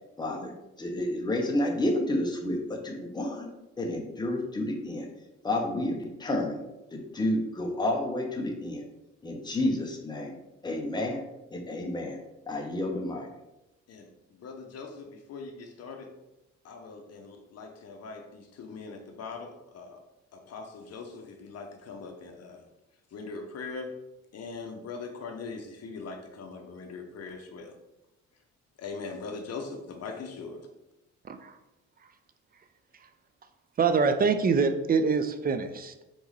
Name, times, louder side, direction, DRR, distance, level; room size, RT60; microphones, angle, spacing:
voice 1, 0.2-0.5 0.8-3.5 3.8-5.1 5.4-6.6 6.9-8.9 9.2-10.3 10.6-11.2 11.5-12.2 12.5-13.3, left 1 dB, 15° left, 1 dB, 0.8 m, -30 dB
voice 2, 13.9-16.1 16.6-20.0 20.3-22.6 23.1-23.9 24.3-27.7 28.8-30.7, left 4 dB, 55° left, 4 dB, 0.7 m, -41 dB
voice 3, 33.8-36.0, right 5 dB, 30° right, 9 dB, 0.4 m, -25 dB
3.9 x 3.5 x 3.1 m, 0.95 s
cardioid pair, 90°, 30 cm